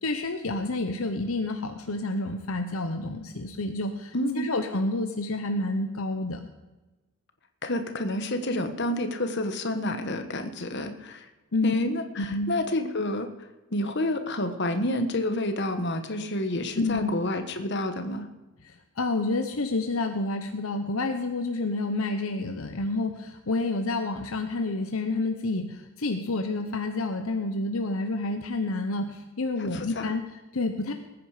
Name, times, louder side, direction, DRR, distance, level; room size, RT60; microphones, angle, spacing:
voice 1, 0.0-6.4 11.5-11.7 12.2-12.5 16.7-17.1 18.6-30.9, left 2 dB, 70° left, 6 dB, 0.9 m, -29 dB
voice 2, 4.1-4.5 7.6-11.3 11.6-13.3 13.7-18.3 29.6-30.1, left 1 dB, 50° left, 8 dB, 1.3 m, -29 dB
20.0 x 9.4 x 5.0 m, 1.1 s
head